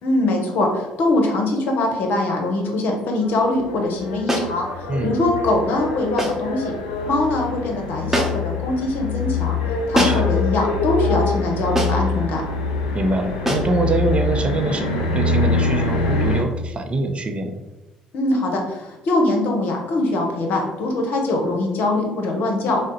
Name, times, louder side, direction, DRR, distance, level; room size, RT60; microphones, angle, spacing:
voice 1, 0.0-4.7 5.0-6.7 7.1-9.6 9.9-12.4 18.1-22.8, left 2 dB, 60° left, 1 dB, 0.8 m, -22 dB
sound 1, 3.2-16.4, left 3 dB, 85° left, 0.4 m, -24 dB
sound 2, 4.3-4.6 6.2-6.5 8.1-8.6 9.9-10.4 11.8-12.1 13.5-13.8, equal, 10° right, 0.9 m, -23 dB
voice 2, 12.9-17.6, right 2 dB, 35° right, 5 dB, 0.5 m, -24 dB
3.6 x 2.1 x 3.9 m, 1.1 s
hypercardioid pair, 55°, 3 cm